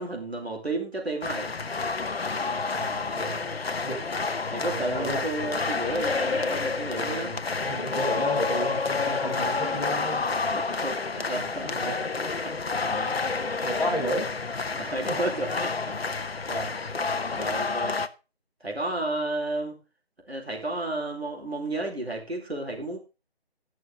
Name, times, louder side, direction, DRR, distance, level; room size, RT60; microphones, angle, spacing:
voice 1, 0.0-1.5 4.5-7.4 10.5-11.8 12.4-12.6 14.7-15.9 16.9-17.0 17.3-18.0 18.6-19.8 20.2-23.0, right 2 dB, 75° right, 0 dB, 4.0 m, -32 dB
sound 1, 1.2-18.1, left 4 dB, 70° left, 0.9 m, -29 dB
voice 2, 2.7-3.4 3.8-4.1 4.6-5.2 6.9-10.2 11.6-12.0 12.8-13.2 13.6-14.3 15.0-15.2 16.5-16.7, equal, 5° left, -12 dB, 5.2 m, -33 dB
17.5 x 6.3 x 3.7 m, 0.31 s
figure-of-eight pair, 160°, 32 cm